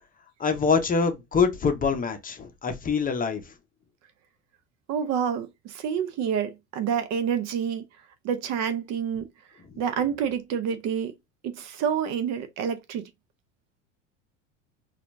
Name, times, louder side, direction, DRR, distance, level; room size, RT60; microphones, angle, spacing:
voice 1, 0.4-3.5 9.7-9.8, left 5 dB, 20° left, 0.7 m, -25 dB
voice 2, 4.9-7.8 8.2-9.3 9.8-11.1 11.4-13.0, right 8 dB, 45° right, 0.6 m, -28 dB
4.2 x 2.4 x 2.6 m
hypercardioid pair, 90°, 37 cm